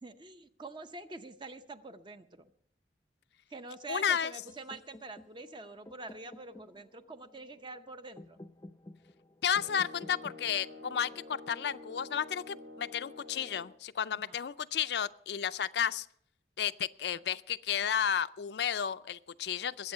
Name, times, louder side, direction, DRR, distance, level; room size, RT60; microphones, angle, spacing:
voice 1, 0.0-2.5 3.5-8.4 14.1-14.4, right 3 dB, 25° right, 9 dB, 0.7 m, -46 dB
voice 2, 3.9-4.3 9.4-16.1 16.6-19.9, left 8 dB, 70° left, 13 dB, 0.4 m, -32 dB
sound 1, 4.5-12.4, left 1 dB, 20° left, 0.5 m, -54 dB
sound 2, 9.6-13.8, left 2 dB, 85° right, 1.6 m, -49 dB
21.5 x 8.0 x 5.6 m, 0.68 s
head